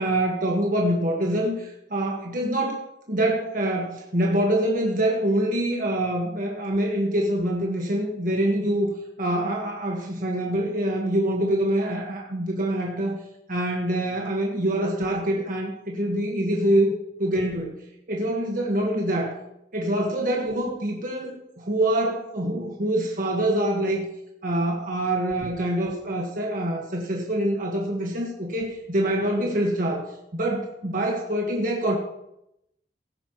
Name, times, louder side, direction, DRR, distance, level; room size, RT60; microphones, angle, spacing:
voice 1, 0.0-2.8 3.1-8.9 9.2-13.2 13.5-16.9 17.2-17.7 18.1-19.3 19.7-24.0 24.4-30.1 30.3-32.0, right 1 dB, 50° right, 0 dB, 1.5 m, -25 dB
16.5 x 9.7 x 3.0 m, 0.82 s
head